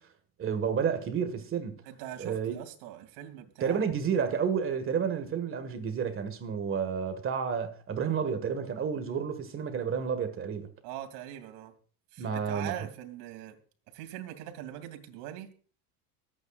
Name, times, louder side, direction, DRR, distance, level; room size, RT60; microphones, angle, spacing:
voice 1, 0.4-1.8 2.2-2.6 3.6-10.7 12.2-12.9, right 7 dB, 30° right, 1.8 m, -30 dB
voice 2, 1.9-3.8 10.8-11.7 12.1-13.6 13.9-15.5, right 11 dB, 65° right, 2.8 m, -42 dB
23.5 x 8.9 x 2.5 m
supercardioid pair, 130°, 44 cm